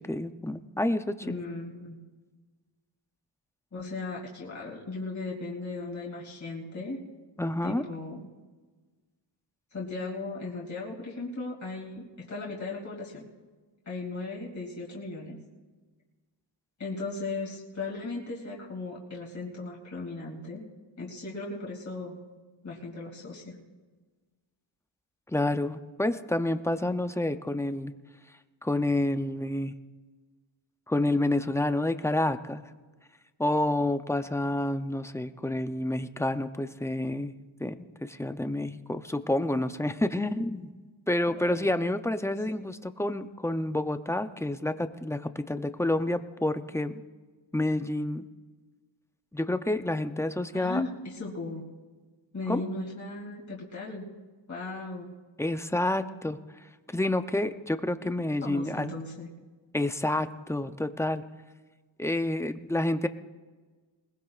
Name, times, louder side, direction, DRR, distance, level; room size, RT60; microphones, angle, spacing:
voice 1, 0.0-1.4 7.4-7.8 25.3-27.9 28.6-29.7 30.9-32.6 33.4-37.3 37.6-40.7 41.1-47.0 47.5-48.3 49.3-50.8 52.5-52.6 55.4-56.4 56.9-58.9 59.7-61.2 62.0-63.1, left 1 dB, 5° left, 9 dB, 0.4 m, -29 dB
voice 2, 1.2-2.0 3.7-7.0 7.6-8.3 9.7-13.3 13.9-15.4 16.8-20.7 21.0-22.2 22.6-23.6 41.4-41.7 50.5-51.6 52.3-54.1 54.5-55.2 58.4-59.3, left 3 dB, 35° left, -3 dB, 2.5 m, -37 dB
21.0 x 21.0 x 2.4 m, 1.4 s
wide cardioid pair, 145°, 48 cm